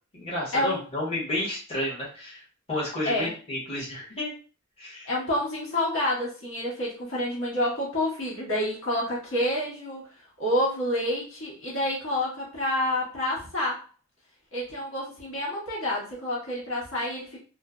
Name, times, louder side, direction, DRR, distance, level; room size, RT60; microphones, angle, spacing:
voice 1, 0.1-2.4 2.7-4.3 4.8-5.1, left 1 dB, 30° left, -6 dB, 1.1 m, -31 dB
voice 2, 5.0-10.1 10.4-13.8 14.5-17.4, left 1 dB, 65° left, -5 dB, 1.1 m, -28 dB
3.2 x 2.1 x 2.3 m, 0.36 s
head